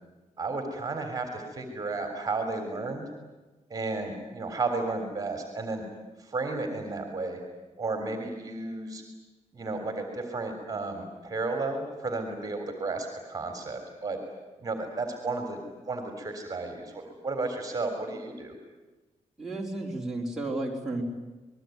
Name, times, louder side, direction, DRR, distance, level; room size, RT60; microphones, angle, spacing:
voice 1, 0.4-3.1 3.7-5.8 6.2-7.4 7.8-9.0 9.5-14.2 14.6-15.6 15.8-18.5, right 3 dB, 30° right, 5 dB, 3.6 m, -33 dB
voice 2, 19.4-21.0, right 2 dB, 5° right, -3 dB, 4.4 m, -32 dB
28.0 x 21.0 x 9.4 m, 1.2 s
wide cardioid pair, 175°, 13 cm